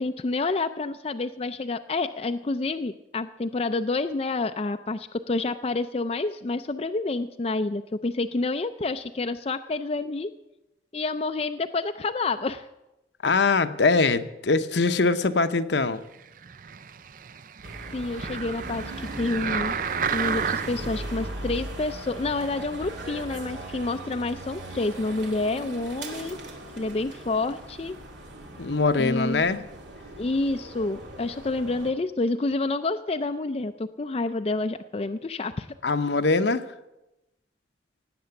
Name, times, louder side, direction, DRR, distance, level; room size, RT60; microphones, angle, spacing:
voice 1, 0.0-10.3 10.9-12.7 17.9-19.8 20.0-26.4 26.8-28.0 29.0-29.6 30.2-35.7, left 3 dB, 30° left, 8 dB, 0.4 m, -28 dB
voice 2, 13.2-16.0 28.6-29.6 35.8-36.6, left 3 dB, 70° left, 10 dB, 0.8 m, -22 dB
sound 1, 16.4-21.0 21.6-21.7, right 6 dB, 45° right, 0.4 m, -31 dB
sound 2, 17.6-31.9, right 1 dB, 80° right, 2.3 m, -39 dB
17.5 x 8.7 x 7.0 m, 0.95 s
head